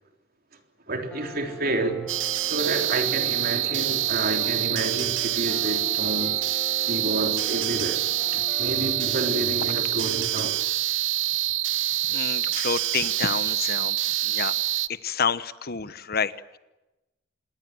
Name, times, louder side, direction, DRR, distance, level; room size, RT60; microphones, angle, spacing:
voice 1, 0.9-2.1 2.4-6.4 6.7-8.0 8.3-10.8, right 2 dB, 50° right, 3.6 m, -29 dB
Guitar, 1.1-9.8, equal, 5° left, 4.7 m, -43 dB
sound 1, 2.1-14.9, right 14 dB, 75° right, 0.8 m, -26 dB
voice 2, 12.1-14.0 14.3-14.5 15.0-16.3, left 6 dB, 55° left, 1.1 m, -28 dB
27.5 x 21.5 x 7.9 m
head